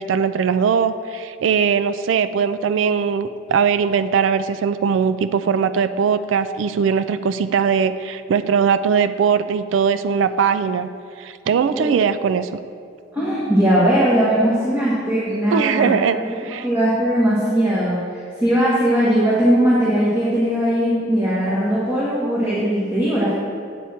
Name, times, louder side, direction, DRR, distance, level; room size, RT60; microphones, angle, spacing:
voice 1, 0.0-10.9 11.2-12.6 15.5-16.7, right 6 dB, 85° right, 11 dB, 0.3 m, -20 dB
voice 2, 13.1-16.3 16.6-23.3, equal, 10° right, -9 dB, 1.4 m, -19 dB
8.3 x 7.5 x 4.3 m, 2.3 s
head